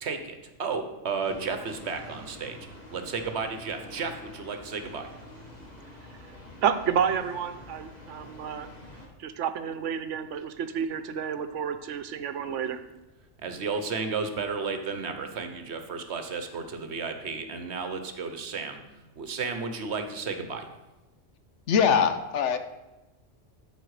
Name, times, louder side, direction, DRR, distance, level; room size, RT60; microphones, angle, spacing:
voice 1, 0.0-2.6 2.9-5.1 13.4-18.8 19.2-20.7, right 5 dB, 65° right, 7 dB, 1.2 m, -33 dB
sound 1, 1.2-9.1, left 1 dB, 35° left, 2.0 m, -47 dB
voice 2, 6.6-8.7 9.2-12.8, right 8 dB, 85° right, 11 dB, 1.0 m, -30 dB
voice 3, 21.7-22.6, left 7 dB, 75° left, 9 dB, 1.1 m, -22 dB
13.0 x 5.1 x 4.8 m, 1.1 s
omnidirectional pair, 1.2 m